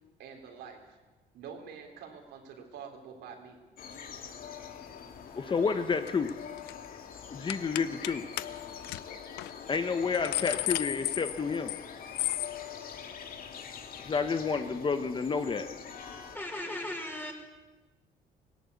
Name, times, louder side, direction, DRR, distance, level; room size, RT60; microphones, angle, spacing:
voice 1, 0.2-1.0 1.3-3.6 5.4-5.6, right 6 dB, 80° right, 2 dB, 3.8 m, -47 dB
sound 1, 3.8-16.4, left 7 dB, 60° left, 2.3 m, -44 dB
voice 2, 5.3-6.3 7.3-8.2 9.7-11.7 14.0-15.7, left 5 dB, 30° left, 8 dB, 1.1 m, -30 dB
sound 2, 6.1-6.3 6.6-6.9 7.5-8.1 8.4-8.5 8.8-9.0 9.4-9.5 9.9-11.8 12.2-12.5, left 17 dB, 90° left, 0.6 m, -33 dB
voice 3, 16.3-17.3, left 1 dB, 10° left, 3 dB, 4.6 m, -37 dB
18.0 x 17.0 x 8.4 m, 1.2 s
cardioid pair, 110°, 17 cm